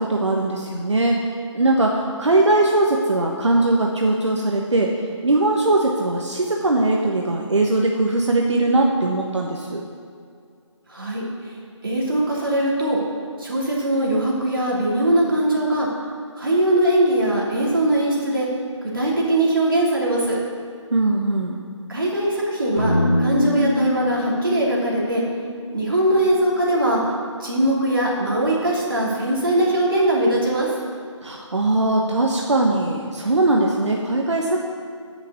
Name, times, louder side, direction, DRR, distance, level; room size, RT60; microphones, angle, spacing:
voice 1, 0.0-4.9 5.2-9.8 20.9-21.6 31.2-34.6, right 2 dB, 65° right, 0 dB, 1.3 m, -20 dB
voice 2, 10.9-11.5 11.8-13.0 13.4-15.9 16.4-18.5 18.8-20.4 21.9-22.9 23.2-25.2 25.7-27.0 27.4-30.7, right 1 dB, 45° right, -4 dB, 2.8 m, -21 dB
sound 1, 22.8-26.9, left 1 dB, 35° left, 1.9 m, -24 dB
8.6 x 7.1 x 8.4 m, 2.2 s
figure-of-eight pair, 180°, 16 cm